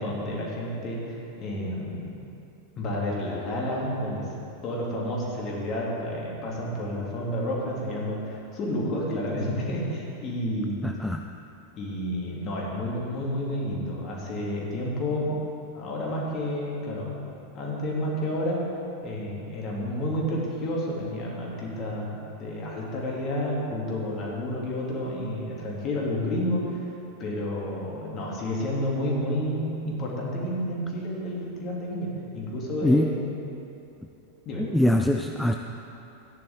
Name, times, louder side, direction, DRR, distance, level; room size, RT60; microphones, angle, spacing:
voice 1, 0.0-2.1 2.8-4.2 4.6-10.8 11.8-15.4 15.7-17.2 17.5-18.6 19.0-26.8 27.2-33.3 34.4-34.6, left 1 dB, 30° left, -4 dB, 2.7 m, -30 dB
voice 2, 10.8-11.2 32.8-33.1 34.6-35.6, left 1 dB, 5° left, 4 dB, 0.4 m, -23 dB
14.0 x 10.5 x 3.7 m, 2.7 s
figure-of-eight pair, 90°, 0 cm